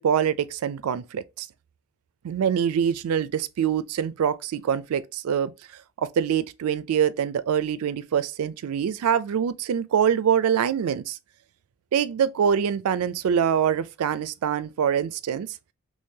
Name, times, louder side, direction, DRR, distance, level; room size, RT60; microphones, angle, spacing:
voice 1, 0.0-1.5 2.2-5.5 6.0-11.2 11.9-15.5, right 8 dB, 85° right, 0.3 m, -24 dB
3.1 x 2.7 x 3.6 m
head